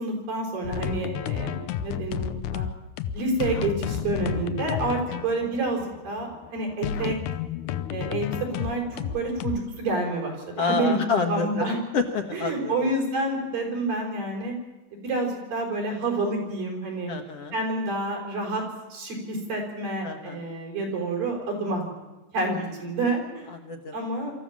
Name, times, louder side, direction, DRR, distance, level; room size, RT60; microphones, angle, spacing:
voice 1, 0.0-2.7 3.1-7.2 7.9-11.0 11.3-11.8 12.3-14.6 15.0-17.1 17.5-18.6 18.9-21.8 22.3-23.5 23.9-24.3, right 2 dB, 80° right, 1 dB, 6.6 m, -28 dB
sound 1, 0.6-9.6, left 10 dB, 75° left, 2.0 m, -31 dB
voice 2, 10.6-11.7 11.9-12.7 17.1-17.5 20.0-20.4 23.6-23.9, left 5 dB, 60° left, 5 dB, 1.8 m, -28 dB
25.0 x 14.0 x 7.4 m, 1.1 s
omnidirectional pair, 3.9 m